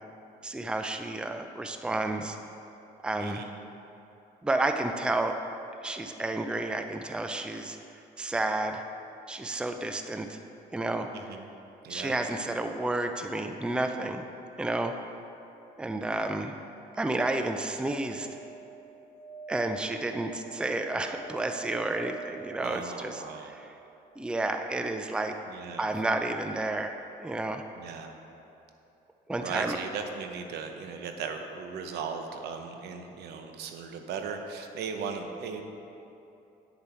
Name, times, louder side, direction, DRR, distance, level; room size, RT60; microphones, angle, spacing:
voice 1, 0.4-2.4 3.0-3.5 4.4-5.4 5.8-7.8 8.2-8.8 9.3-10.4 10.7-11.1 11.9-14.3 14.6-14.9 15.8-16.6 16.9-18.3 19.5-23.2 23.5-23.7 24.2-25.4 25.8-27.6 29.3-29.8, right 2 dB, 5° right, 6 dB, 0.4 m, -31 dB
voice 2, 3.2-3.5 11.1-11.5 11.8-12.1 22.6-23.5 25.5-25.9 27.8-28.1 29.4-35.6, right 5 dB, 75° right, 5 dB, 0.9 m, -37 dB
sound 1, 17.9-24.1 26.4-26.5 26.6-26.7, right 6 dB, 55° right, 2.0 m, -46 dB
9.9 x 6.9 x 4.4 m, 2.9 s
cardioid pair, 110°, 17 cm